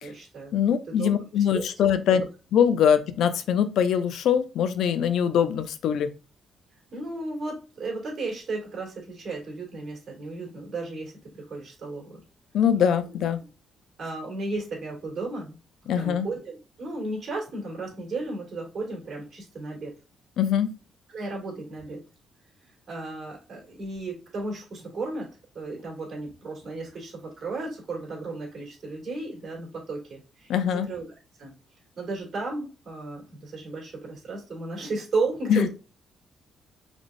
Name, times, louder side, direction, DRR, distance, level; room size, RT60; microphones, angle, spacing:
voice 1, 0.0-0.5 0.9-1.1 1.5-1.6 2.1-2.2 6.9-12.2 14.0-15.6 15.8-19.9 21.1-22.0 22.9-25.3 25.5-31.1 31.4-31.5 32.0-35.7, right 3 dB, 45° right, -2 dB, 2.2 m, -34 dB
voice 2, 0.5-2.2 2.5-6.1 12.5-13.4 15.9-16.3 20.4-20.7 30.5-30.9 35.5-35.7, left 8 dB, 75° left, 11 dB, 0.5 m, -23 dB
5.1 x 3.5 x 2.5 m, 0.32 s
cardioid pair, 90°, 0 cm